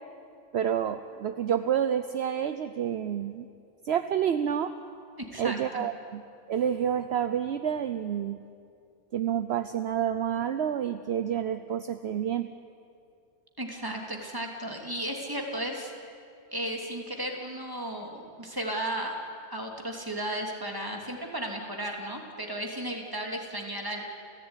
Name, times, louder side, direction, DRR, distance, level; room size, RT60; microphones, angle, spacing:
voice 1, 0.5-3.5 3.8-4.7 5.4-6.2 6.5-8.4 9.1-12.5, right 9 dB, 60° right, 10 dB, 1.0 m, -29 dB
voice 2, 5.2-5.9 13.6-15.9 16.5-19.1 19.5-24.0, right 1 dB, 15° right, 1 dB, 3.0 m, -34 dB
29.5 x 15.5 x 9.8 m, 2.4 s
omnidirectional pair, 1.3 m